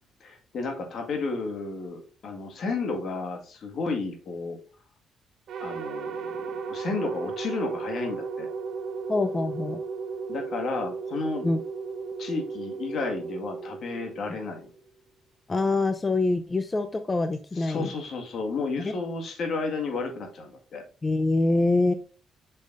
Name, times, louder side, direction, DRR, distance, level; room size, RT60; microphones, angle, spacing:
voice 1, 0.2-4.6 5.6-8.5 10.3-11.5 12.2-14.7 17.5-20.8, left 3 dB, 60° left, 4 dB, 1.9 m, -32 dB
sound 1, 5.5-14.8, right 5 dB, 70° right, 1.0 m, -35 dB
voice 2, 9.1-9.8 11.4-11.6 15.5-17.9 18.8-18.9 21.0-21.9, left 2 dB, 25° left, 9 dB, 0.5 m, -25 dB
7.4 x 5.6 x 2.6 m, 0.39 s
cardioid pair, 90°, 0 cm